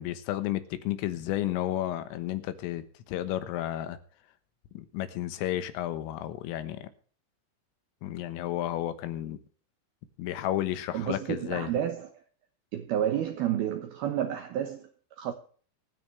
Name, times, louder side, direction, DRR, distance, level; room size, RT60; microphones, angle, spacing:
voice 1, 0.0-4.0 4.8-6.9 8.0-9.4 10.2-11.7, left 13 dB, 80° left, 3.8 m, -32 dB
voice 2, 10.9-12.1 12.7-14.9 15.2-15.3, right 10 dB, 80° right, 2.2 m, -30 dB
25.5 x 9.6 x 3.3 m
omnidirectional pair, 5.8 m